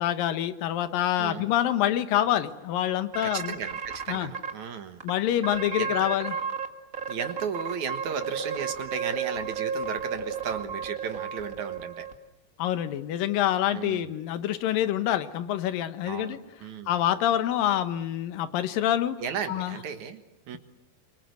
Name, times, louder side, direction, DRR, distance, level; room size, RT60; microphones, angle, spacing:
voice 1, 0.0-3.6 4.1-4.3 5.0-6.4 12.6-16.4 16.9-19.2 19.5-19.8, left 12 dB, 70° left, 11 dB, 2.7 m, -26 dB
sound 1, 3.1-4.5 5.0-5.1 5.4-6.7 6.9-12.1, right 6 dB, 35° right, 1.3 m, -32 dB
voice 2, 3.2-5.0 5.8-6.1 7.1-12.1 13.7-14.1 16.0-16.9 19.2-20.6, right 7 dB, 60° right, 8 dB, 2.4 m, -35 dB
27.0 x 24.5 x 8.2 m, 1.0 s
omnidirectional pair, 4.5 m